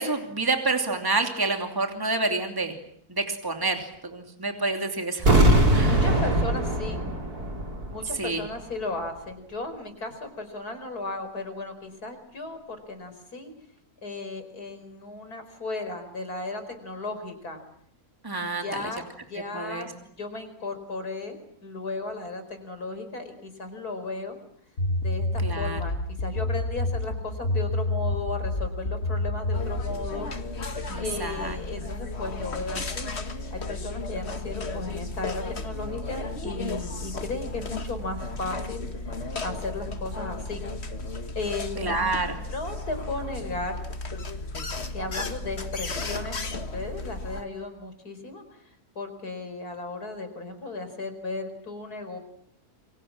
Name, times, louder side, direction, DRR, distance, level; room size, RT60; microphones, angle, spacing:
voice 1, 0.0-2.7 3.1-5.3 5.7-6.0 8.2-8.4 18.2-18.9 19.5-19.9 25.4-25.8 30.9-31.6 41.8-42.4, right 3 dB, 15° right, 4 dB, 2.8 m, -28 dB
sound 1, 5.2-8.1 8.4-8.5, right 1 dB, 85° right, 5.7 m, -21 dB
voice 2, 5.7-7.0 7.9-13.5 14.0-17.6 18.6-19.9 20.2-24.4 25.0-30.3 31.0-40.6 41.3-43.8 44.9-48.6 48.9-52.2, left 2 dB, 85° left, 8 dB, 5.1 m, -35 dB
sound 2, 24.8-30.0, left 2 dB, 65° left, 4.0 m, -28 dB
sound 3, 29.5-47.4, left 2 dB, 45° left, 2.0 m, -34 dB
28.0 x 25.0 x 7.4 m, 0.68 s
omnidirectional pair, 1.6 m